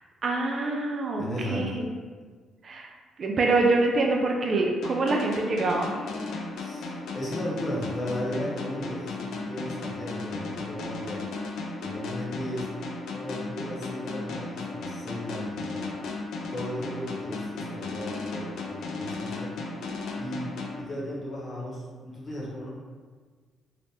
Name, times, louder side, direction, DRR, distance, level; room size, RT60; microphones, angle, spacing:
voice 1, 0.2-1.2 1.5-1.9 2.6-2.9 3.2-6.0, right 3 dB, 45° right, 1 dB, 0.3 m, -25 dB
voice 2, 1.2-1.8 6.6-11.3 11.8-12.7 13.1-15.9 16.5-19.5 20.2-20.5 20.8-22.7, equal, 35° left, -5 dB, 1.0 m, -35 dB
sound 1, 4.8-21.4, left 3 dB, 75° left, 0.4 m, -35 dB
2.8 x 2.1 x 3.3 m, 1.5 s
cardioid pair, 90°, 0 cm